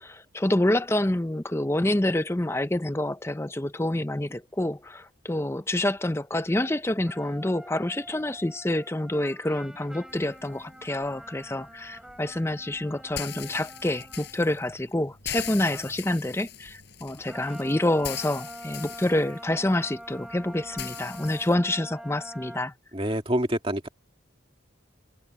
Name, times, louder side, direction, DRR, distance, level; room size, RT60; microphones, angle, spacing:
voice 1, 0.0-22.7, left 1 dB, 10° left, 0.6 m, -27 dB
sound 1, 7.0-14.5 15.7-16.0 17.3-22.6, equal, 5° right, 6.0 m, -45 dB
sound 2, 10.1-21.5, left 10 dB, 55° left, 7.1 m, -42 dB
voice 2, 22.9-23.9, right 1 dB, 25° right, 2.6 m, -26 dB
head